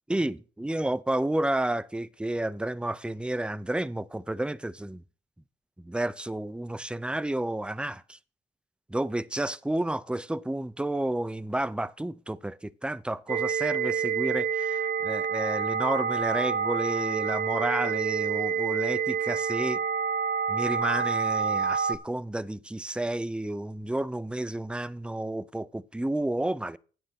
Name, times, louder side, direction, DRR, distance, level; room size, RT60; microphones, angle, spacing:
voice 1, 0.1-5.0 5.8-8.2 8.9-19.8 20.5-26.8, right 1 dB, 5° right, 0.5 m, -31 dB
sound 1, 13.3-22.0, right 6 dB, 50° right, 0.8 m, -28 dB
9.4 x 7.4 x 5.8 m
cardioid pair, 90°, 20 cm